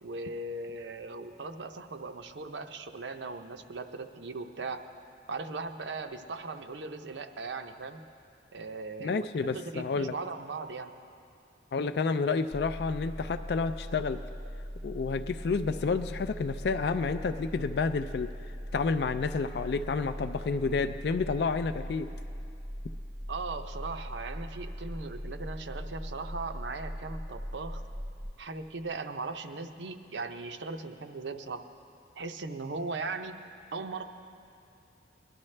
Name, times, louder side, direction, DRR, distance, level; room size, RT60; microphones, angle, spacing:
voice 1, 0.0-4.8 5.3-8.0 8.5-10.9 23.3-27.8 28.4-31.6 32.2-33.4 33.7-34.0, right 3 dB, 80° right, 7 dB, 0.6 m, -38 dB
voice 2, 9.0-10.1 11.7-14.2 14.8-18.3 18.7-22.1, left 4 dB, 65° left, 9 dB, 0.4 m, -30 dB
sound 1, 12.5-28.3, equal, 5° right, 0.4 m, -40 dB
21.0 x 11.5 x 3.3 m, 2.5 s
head